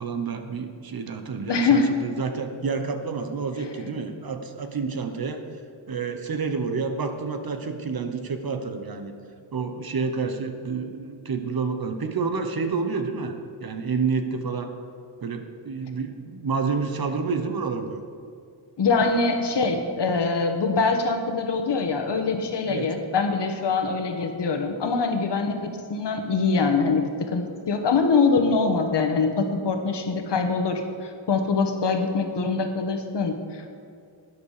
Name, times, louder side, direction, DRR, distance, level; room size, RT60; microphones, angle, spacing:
voice 1, 0.0-5.4 5.9-9.1 9.5-14.7 15.2-18.0 22.7-22.9, right 5 dB, 50° right, 7 dB, 1.0 m, -29 dB
voice 2, 1.5-1.9 18.8-33.7, left 4 dB, 60° left, 5 dB, 1.4 m, -24 dB
12.0 x 9.8 x 5.0 m, 2.4 s
wide cardioid pair, 105°, 47 cm